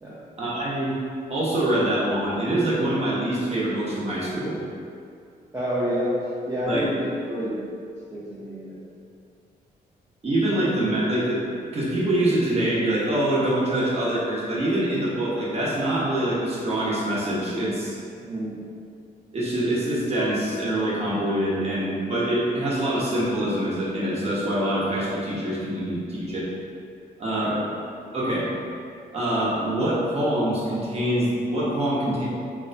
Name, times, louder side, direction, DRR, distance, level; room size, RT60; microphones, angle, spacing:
voice 1, 0.4-0.9 1.3-4.5 6.7-6.8 10.2-11.4 11.7-18.0 19.3-26.5 27.2-27.6 28.1-28.4 29.1-32.3, right 1 dB, 40° right, -7 dB, 1.0 m, -24 dB
voice 2, 5.5-6.1 6.5-7.6 8.1-8.8 18.2-18.6 27.3-27.6, equal, 15° right, -10 dB, 0.7 m, -29 dB
3.0 x 2.2 x 3.9 m, 2.4 s
cardioid pair, 110°, 16 cm